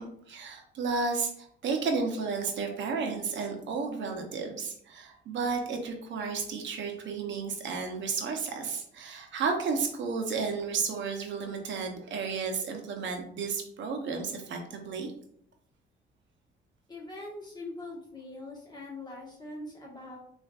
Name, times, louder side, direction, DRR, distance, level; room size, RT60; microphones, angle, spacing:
voice 1, 0.0-15.1, right 4 dB, 70° right, 3 dB, 0.7 m, -32 dB
voice 2, 16.9-20.2, left 2 dB, 20° left, -3 dB, 1.3 m, -42 dB
4.4 x 2.5 x 2.4 m, 0.66 s
cardioid pair, 90°, 20 cm